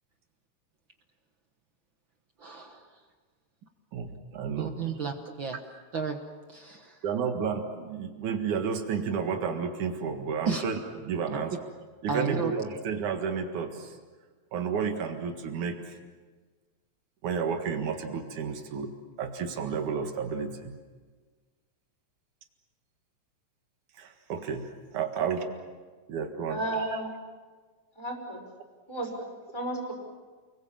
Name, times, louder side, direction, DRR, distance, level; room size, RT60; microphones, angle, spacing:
voice 1, 2.4-2.8 4.6-5.6 5.9-6.2 6.5-7.0 10.4-10.6 11.5-11.6 12.1-12.5, right 5 dB, 50° right, 5 dB, 1.6 m, -32 dB
voice 2, 3.9-4.8 7.0-11.6 12.0-13.9 14.5-15.8 17.2-18.9 19.2-20.7 24.0-25.5 26.1-26.6 26.9-27.3, right 6 dB, 90° right, 5 dB, 3.2 m, -31 dB
voice 3, 26.5-27.1 28.0-28.4 28.9-29.1 29.5-29.9, right 1 dB, 10° left, 1 dB, 5.2 m, -32 dB
30.0 x 22.0 x 7.4 m, 1.4 s
omnidirectional pair, 3.3 m